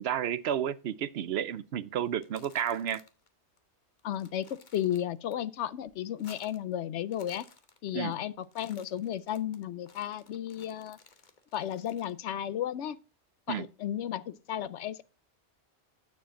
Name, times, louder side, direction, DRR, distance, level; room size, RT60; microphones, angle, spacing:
voice 1, 0.0-3.0 7.9-8.1 13.5-13.6, right 9 dB, 70° right, 0.8 m, -31 dB
sound 1, 2.1-3.3 3.6-3.7 4.0-5.3 5.7-6.7 7.0-8.1 8.4-12.2, left 5 dB, 45° left, 1.1 m, -57 dB
voice 2, 4.0-7.5 7.8-11.0 11.5-13.0 13.5-15.0, left 11 dB, 80° left, 0.9 m, -34 dB
9.6 x 7.0 x 3.7 m
omnidirectional pair, 1.2 m